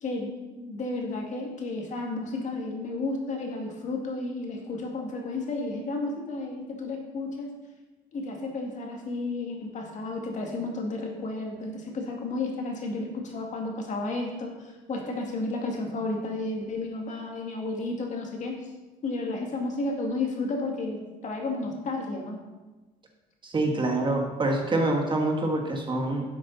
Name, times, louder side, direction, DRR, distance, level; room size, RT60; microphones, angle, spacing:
voice 1, 0.0-7.5 8.1-18.5 19.0-22.4, left 2 dB, 45° left, 1 dB, 2.2 m, -32 dB
voice 2, 23.4-26.2, right 2 dB, 30° right, 2 dB, 1.5 m, -26 dB
11.5 x 7.6 x 4.1 m, 1.2 s
cardioid pair, 110°, 17 cm